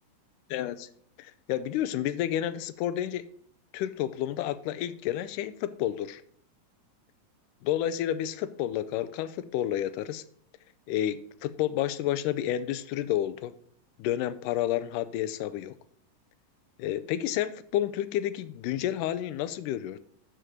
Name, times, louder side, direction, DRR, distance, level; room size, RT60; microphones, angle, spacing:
voice 1, 0.5-0.9 1.2-3.3 3.7-6.2 7.6-10.2 10.9-13.5 14.0-15.7 16.8-20.0, left 12 dB, 80° left, 14 dB, 2.0 m, -30 dB
11.0 x 4.5 x 5.0 m, 0.63 s
omnidirectional pair, 4.0 m